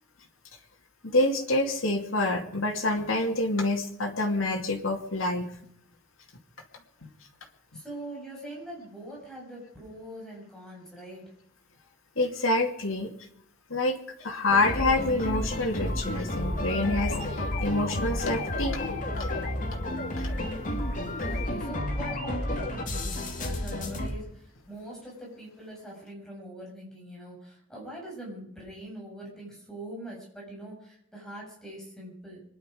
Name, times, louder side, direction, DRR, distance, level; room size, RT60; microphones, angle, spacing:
voice 1, 1.0-5.5 12.2-13.1 13.7-18.8 19.2-19.3, left 2 dB, 80° left, 1 dB, 2.6 m, -27 dB
voice 2, 7.7-11.2 21.3-32.4, right 1 dB, 5° left, -3 dB, 6.8 m, -43 dB
sound 1, 14.5-24.1, left 1 dB, 40° left, 2.7 m, -31 dB
26.0 x 11.0 x 5.0 m, 0.74 s
head